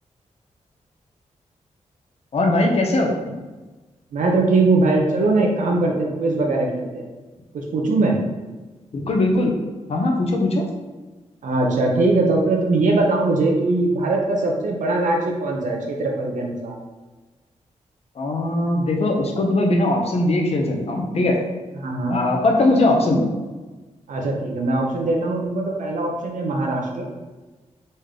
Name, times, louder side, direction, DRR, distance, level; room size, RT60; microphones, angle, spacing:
voice 1, 2.3-3.1 8.9-9.5 9.9-10.6 18.2-21.4 22.1-23.3, left 2 dB, 55° left, 1 dB, 0.9 m, -20 dB
voice 2, 4.1-7.1 7.5-8.2 11.4-16.8 21.8-22.2 24.1-27.1, right 2 dB, 85° right, 0 dB, 0.9 m, -21 dB
4.1 x 3.6 x 3.5 m, 1.2 s
wide cardioid pair, 115°, 13 cm